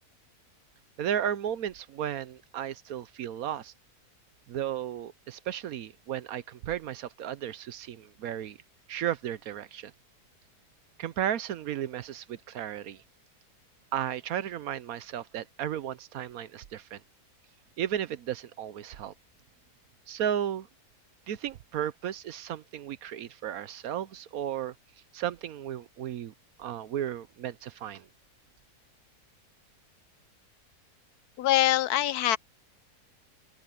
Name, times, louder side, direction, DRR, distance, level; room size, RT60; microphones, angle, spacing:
voice 1, 1.0-3.7 4.5-8.6 8.9-9.9 11.0-13.0 13.9-17.0 17.8-19.1 20.1-20.7 21.3-24.7 25.1-26.3 26.6-28.1, right 10 dB, 70° right, 1.1 m, -34 dB
voice 2, 31.4-32.4, left 14 dB, 75° left, 1.1 m, -24 dB
open air
omnidirectional pair, 1.7 m